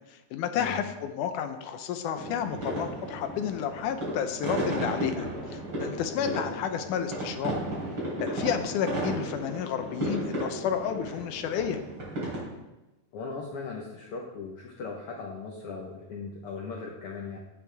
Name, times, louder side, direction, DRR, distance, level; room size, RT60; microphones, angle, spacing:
voice 1, 0.1-7.5 8.2-11.8, left 8 dB, 85° left, 7 dB, 2.3 m, -31 dB
sound 1, 2.1-12.4, right 1 dB, 35° right, 4.6 m, -34 dB
voice 2, 13.1-17.4, left 4 dB, 60° left, -1 dB, 1.8 m, -38 dB
17.0 x 7.6 x 3.5 m, 1.0 s
omnidirectional pair, 3.5 m